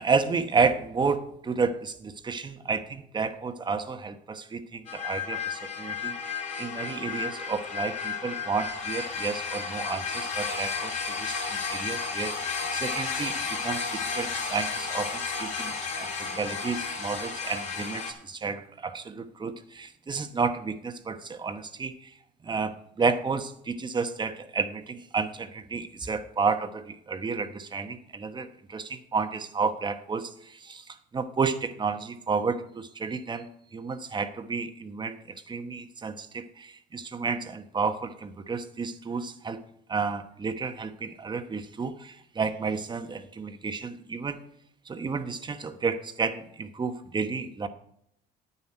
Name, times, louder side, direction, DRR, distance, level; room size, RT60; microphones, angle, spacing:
voice 1, 0.0-22.1 22.4-39.6 39.9-44.4 44.9-47.7, right 5 dB, 25° right, 9 dB, 1.0 m, -31 dB
sound 1, 4.9-18.1, left 5 dB, 45° left, 2.4 m, -33 dB
9.7 x 9.7 x 4.3 m, 0.73 s
cardioid pair, 110°, 17 cm